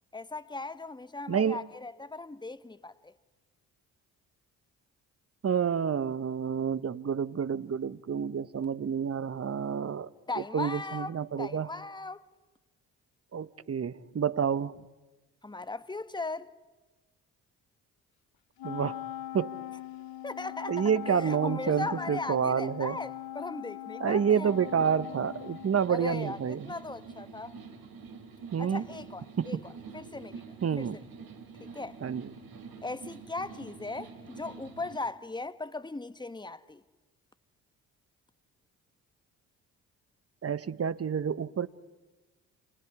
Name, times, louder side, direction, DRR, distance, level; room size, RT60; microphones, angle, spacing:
voice 1, 0.1-3.1 10.3-12.2 15.4-16.5 20.2-24.5 25.9-27.5 28.6-30.4 30.8-30.9 31.6-32.0 32.8-36.8, left 3 dB, 10° left, 1.2 m, -38 dB
voice 2, 1.3-1.6 5.4-10.1 10.5-11.7 13.3-14.7 18.6-19.0 19.3-19.6 20.7-23.0 24.0-26.7 28.5-28.9 29.4-29.6 30.6-31.0 32.0-32.3 40.4-41.7, right 7 dB, 35° right, 1.1 m, -29 dB
Wind instrument woodwind instrument, 18.6-26.2, left 13 dB, 60° left, 0.8 m, -41 dB
sound 1, 24.4-35.0, right 5 dB, 60° right, 3.6 m, -47 dB
30.0 x 29.0 x 4.9 m
hypercardioid pair, 50°, 41 cm